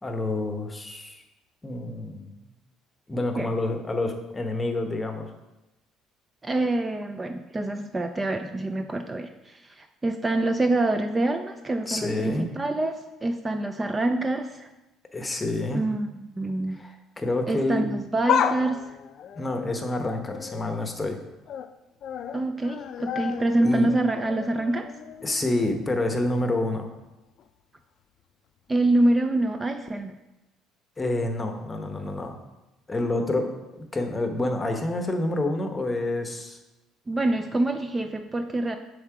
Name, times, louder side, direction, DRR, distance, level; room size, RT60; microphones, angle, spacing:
voice 1, 0.0-1.2 1.6-2.3 3.1-5.3 11.9-12.5 15.1-15.8 16.7-17.8 19.4-21.2 23.6-23.9 25.2-26.9 31.0-32.4 32.9-36.6, left 2 dB, 20° left, 5 dB, 0.9 m, -28 dB
voice 2, 6.4-12.9 13.2-14.7 15.7-16.1 16.4-16.8 17.5-19.0 22.3-24.9 28.7-30.2 37.1-38.8, right 2 dB, 20° right, 7 dB, 0.4 m, -26 dB
sound 1, 18.2-20.9 21.3-21.7 22.0-25.9 26.3-26.4 27.4-27.5, left 8 dB, 55° left, 0.4 m, -32 dB
7.2 x 3.6 x 4.8 m, 1.0 s
cardioid pair, 100°, 0 cm